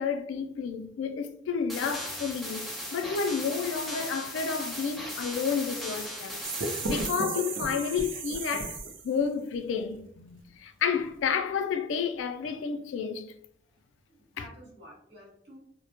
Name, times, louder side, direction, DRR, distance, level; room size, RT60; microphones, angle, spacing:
voice 1, 0.0-6.4 6.9-8.8 9.0-13.3 14.4-14.5, left 6 dB, 90° left, 0.3 m, -31 dB
sound 1, 1.7-7.1, left 1 dB, ahead, 0.3 m, -37 dB
sound 2, 6.4-9.2, right 3 dB, 90° right, 0.5 m, -34 dB
voice 2, 7.7-8.2 12.4-12.7 14.1-15.6, equal, 65° right, 1.2 m, -53 dB
2.1 x 2.0 x 2.8 m
head